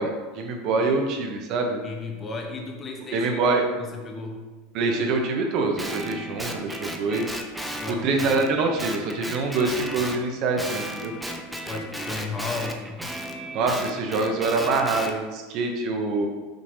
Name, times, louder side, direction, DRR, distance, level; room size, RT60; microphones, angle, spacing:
voice 1, 0.0-1.8 3.1-3.6 4.7-7.4 7.9-11.1 13.5-16.3, right 3 dB, 55° right, 3 dB, 0.7 m, -25 dB
voice 2, 1.8-4.4 7.8-8.3 11.6-13.0, left 3 dB, 30° left, 2 dB, 0.8 m, -34 dB
Guitar, 5.8-10.2 10.6-15.1, equal, 5° right, 0.5 m, -34 dB
6.0 x 3.2 x 2.7 m, 1.3 s
hypercardioid pair, 100°, 0 cm